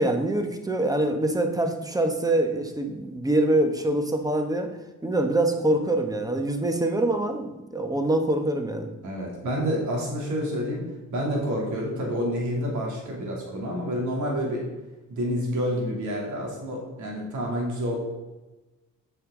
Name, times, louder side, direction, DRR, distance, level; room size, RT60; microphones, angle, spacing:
voice 1, 0.0-4.7 5.0-8.9, right 1 dB, 10° right, 6 dB, 1.0 m, -24 dB
voice 2, 9.0-10.8 11.1-14.7 15.1-18.0, equal, 75° right, -2 dB, 2.6 m, -28 dB
7.8 x 5.5 x 3.7 m, 1.1 s
cardioid pair, 90°, 30 cm